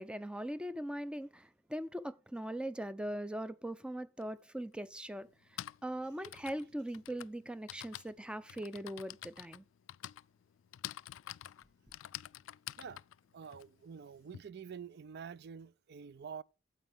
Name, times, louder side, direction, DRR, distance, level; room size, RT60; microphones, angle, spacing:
voice 1, 0.0-9.6, right 1 dB, 5° right, 0.5 m, -41 dB
Typing, 4.2-4.3 5.3-14.4, left 13 dB, 70° left, 0.3 m, -48 dB
voice 2, 13.3-16.4, right 6 dB, 55° right, 0.4 m, -47 dB
9.2 x 7.9 x 3.5 m
head